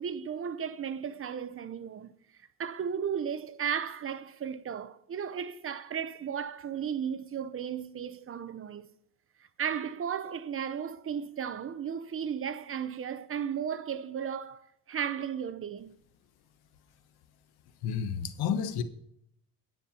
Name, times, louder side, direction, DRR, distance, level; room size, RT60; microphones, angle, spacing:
voice 1, 0.0-2.1 2.6-8.8 9.6-14.6 14.9-15.9, right 8 dB, 35° right, 0.7 m, -35 dB
voice 2, 17.8-18.8, left 7 dB, 85° left, 1.2 m, -30 dB
10.0 x 9.2 x 4.3 m
cardioid pair, 130°, 37 cm